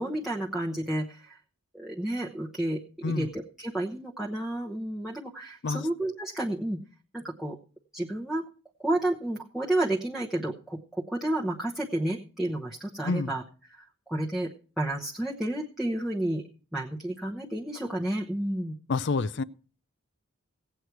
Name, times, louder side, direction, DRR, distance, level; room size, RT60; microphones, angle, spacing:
voice 1, 0.0-1.4 1.7-6.8 7.1-7.6 7.9-8.4 8.8-13.4 13.7-16.4 16.7-18.8, right 1 dB, ahead, 0.9 m, -31 dB
voice 2, 18.9-19.4, left 4 dB, 55° left, 0.5 m, -28 dB
17.5 x 8.2 x 4.6 m
head